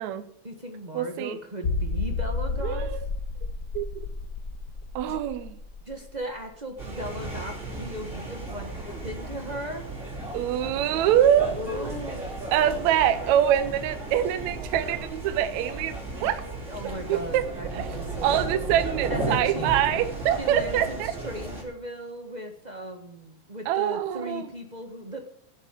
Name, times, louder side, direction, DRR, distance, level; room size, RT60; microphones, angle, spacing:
voice 1, 0.4-3.1 5.0-5.2 5.9-9.9 11.5-12.3 16.7-18.7 19.1-19.7 20.4-25.2, equal, 45° right, 4 dB, 0.5 m, -37 dB
voice 2, 0.9-1.4 2.6-3.1 3.7-4.1 5.0-5.5 10.3-11.5 12.5-16.4 17.1-17.4 17.7-17.9 18.2-21.1 23.7-24.5, right 10 dB, 75° right, 11 dB, 2.1 m, -24 dB
sound 1, 1.6-7.1 7.4-7.5 8.0-8.1, left 4 dB, 70° left, 0.8 m, -32 dB
sound 2, 6.8-21.6, right 2 dB, 25° right, 4.0 m, -35 dB
11.0 x 8.1 x 9.1 m, 0.70 s
omnidirectional pair, 3.4 m